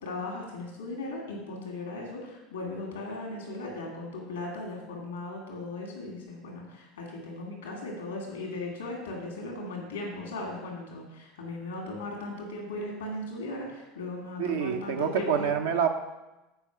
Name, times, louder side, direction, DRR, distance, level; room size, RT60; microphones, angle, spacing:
voice 1, 0.0-15.5, left 2 dB, 85° left, -1 dB, 2.3 m, -37 dB
voice 2, 14.4-15.9, right 7 dB, 75° right, 3 dB, 0.7 m, -27 dB
8.0 x 4.9 x 5.8 m, 1.0 s
hypercardioid pair, 80°, 0 cm